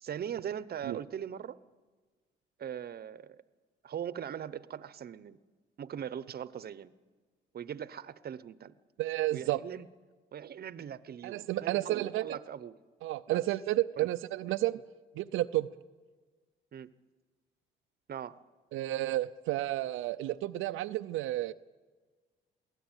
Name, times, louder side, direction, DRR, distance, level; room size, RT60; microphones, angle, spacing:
voice 1, 0.0-1.6 2.6-3.4 3.8-5.4 5.8-6.9 7.5-8.7 9.3-9.9 10.3-12.8 13.3-13.4 16.7-16.9 18.1-18.4, right 9 dB, 50° right, 17 dB, 0.9 m, -40 dB
voice 2, 9.0-9.6 11.2-12.3 13.0-14.8 15.1-15.7 18.7-21.5, right 15 dB, 90° right, 9 dB, 0.6 m, -31 dB
22.5 x 17.0 x 9.0 m, 1.4 s
cardioid pair, 90°, 20 cm